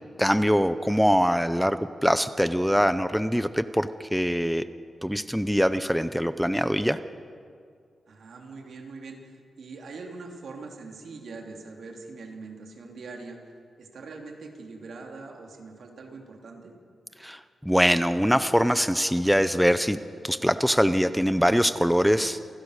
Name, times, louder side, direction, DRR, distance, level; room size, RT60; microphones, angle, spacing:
voice 1, 0.2-4.6 5.0-7.0 17.2-20.0 20.2-22.4, equal, ahead, 11 dB, 0.7 m, -23 dB
voice 2, 8.1-13.4 13.8-16.7, right 3 dB, 75° right, 2 dB, 3.2 m, -42 dB
28.0 x 17.0 x 6.6 m, 2.2 s
cardioid pair, 80°, 0 cm